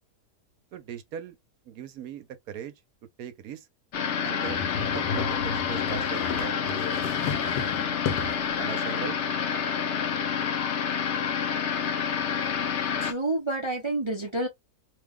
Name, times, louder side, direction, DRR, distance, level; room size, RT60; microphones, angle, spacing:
voice 1, 0.7-1.4 1.7-2.7 3.2-3.7 4.2-7.1 8.6-9.2, right 9 dB, 65° right, 1.1 m, -40 dB
sound 1, 3.9-13.1, left 7 dB, 60° left, 0.7 m, -28 dB
sound 2, 4.4-8.5, left 6 dB, 75° left, 1.3 m, -33 dB
voice 2, 13.0-14.5, right 2 dB, 35° right, 0.4 m, -29 dB
3.0 x 2.3 x 3.5 m
omnidirectional pair, 1.8 m